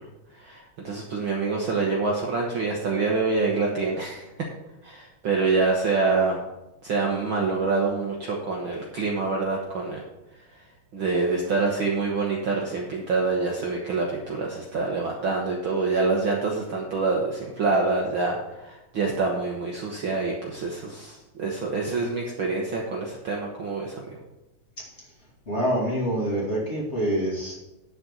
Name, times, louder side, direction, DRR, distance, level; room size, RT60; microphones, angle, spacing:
voice 1, 0.3-4.2 4.8-6.4 6.8-10.0 10.3-10.6 10.9-24.2, right 4 dB, 55° right, -1 dB, 1.6 m, -26 dB
voice 2, 25.5-27.5, equal, 25° left, -4 dB, 2.5 m, -26 dB
10.5 x 4.4 x 7.9 m, 0.99 s
omnidirectional pair, 3.3 m